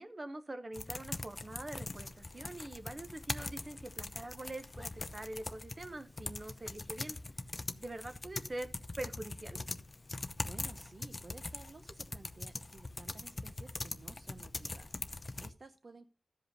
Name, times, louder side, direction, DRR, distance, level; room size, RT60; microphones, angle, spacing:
voice 1, 0.0-7.2 7.8-8.7 9.0-9.6, right 1 dB, 25° right, 10 dB, 1.0 m, -44 dB
sound 1, 0.7-15.5, left 2 dB, 30° left, 0.7 m, -42 dB
voice 2, 10.1-16.1, right 3 dB, 45° right, 6 dB, 0.7 m, -55 dB
13.5 x 5.3 x 5.3 m, 0.38 s
wide cardioid pair, 125°, 0 cm